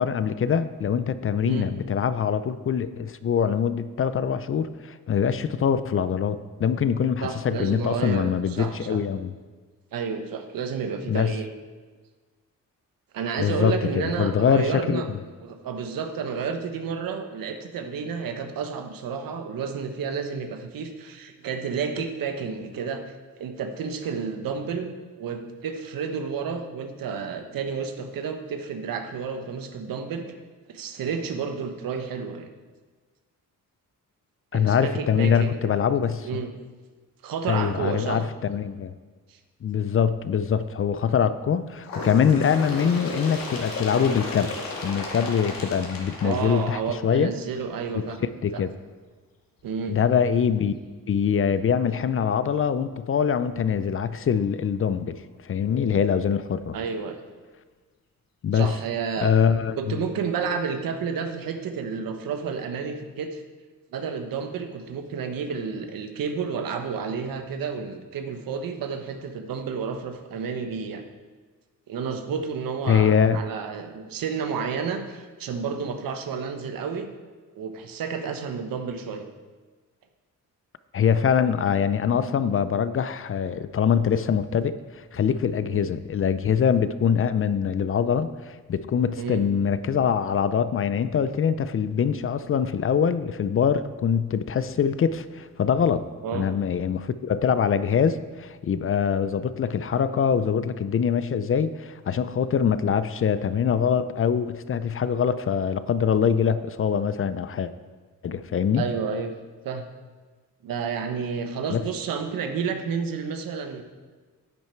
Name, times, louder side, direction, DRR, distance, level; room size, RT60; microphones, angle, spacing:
voice 1, 0.0-9.3 11.1-11.3 13.4-15.0 34.5-36.3 37.5-38.9 39.6-47.3 47.9-48.0 48.4-48.7 49.9-50.8 51.1-56.8 58.4-58.7 59.2-60.0 72.9-73.4 80.9-107.7 108.2-108.8 111.7-111.8, left 7 dB, 40° left, 13 dB, 0.5 m, -24 dB
voice 2, 7.2-9.0 9.9-11.5 13.1-15.1 15.4-30.2 30.7-32.5 34.5-35.8 36.2-36.5 37.2-38.2 39.3-39.4 46.2-48.2 48.5-48.6 49.6-50.0 56.7-57.2 58.5-59.3 59.8-63.4 63.9-71.0 71.9-77.1 77.5-79.2 85.7-85.8 89.2-89.4 96.2-96.5 108.8-109.3 109.6-109.8 110.6-113.8, right 6 dB, 85° right, 6 dB, 1.2 m, -31 dB
Bird, 41.8-47.3 48.2-48.3 48.6-48.7 49.6-49.7 50.6-50.7 51.6-51.7, left 2 dB, 80° left, 2.3 m, -34 dB
10.5 x 9.3 x 4.5 m, 1.4 s
cardioid pair, 110°, 33 cm